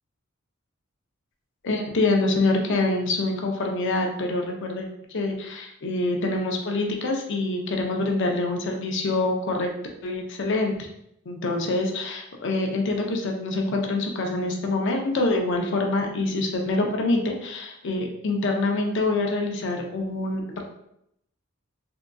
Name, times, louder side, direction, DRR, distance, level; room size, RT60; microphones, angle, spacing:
voice 1, 1.6-9.7 10.0-10.9 11.3-20.6, left 2 dB, 60° left, 2 dB, 0.5 m, -25 dB
3.5 x 2.5 x 2.2 m, 0.76 s
head